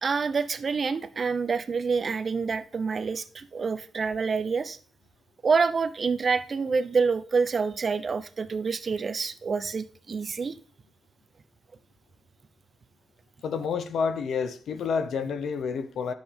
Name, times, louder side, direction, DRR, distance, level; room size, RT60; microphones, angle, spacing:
voice 1, 0.0-4.8 5.4-10.6, right 5 dB, 45° right, 0.8 m, -27 dB
voice 2, 13.4-16.1, left 6 dB, 75° left, 1.0 m, -29 dB
10.0 x 7.9 x 3.5 m
cardioid pair, 80°, 0 cm